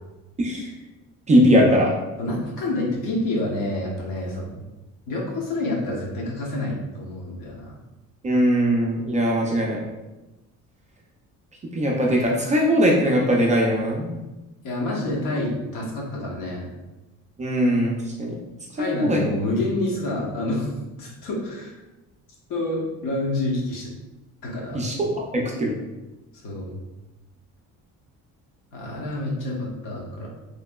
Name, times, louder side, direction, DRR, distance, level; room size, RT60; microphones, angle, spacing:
voice 1, 0.4-0.7 1.3-1.9 8.2-9.8 11.7-14.1 17.4-18.4 18.8-19.2 24.7-25.1 25.3-25.7, equal, 25° right, -2 dB, 0.3 m, -20 dB
voice 2, 2.2-4.5 5.1-7.8 14.6-16.7 18.8-20.7 21.0-21.7 22.5-23.9 24.4-24.8 26.4-26.8 28.7-30.3, left 2 dB, 75° left, -3 dB, 0.9 m, -28 dB
3.0 x 2.7 x 2.2 m, 1.0 s
cardioid pair, 155°, 32 cm